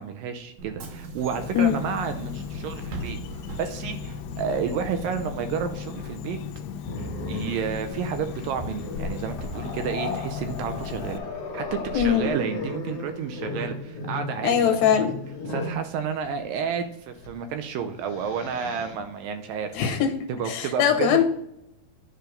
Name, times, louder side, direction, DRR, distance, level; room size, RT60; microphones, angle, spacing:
voice 1, 0.0-3.2 3.6-6.4 7.3-11.2 11.5-14.7 15.5-19.8 20.3-21.2, right 7 dB, 80° right, 7 dB, 2.1 m, -31 dB
Bus / Engine, 0.6-5.7, right 2 dB, 65° right, 2.5 m, -40 dB
Insect, 1.3-11.2, left 8 dB, 90° left, 2.8 m, -37 dB
Growling, 6.8-15.8 17.2-17.4 17.8-19.0, left 2 dB, 45° left, 2.6 m, -35 dB
voice 2, 11.9-12.4 14.4-15.2 19.7-20.1 20.5-21.2, left 8 dB, 75° left, 4 dB, 2.8 m, -21 dB
10.0 x 4.7 x 5.1 m, 0.77 s
omnidirectional pair, 4.5 m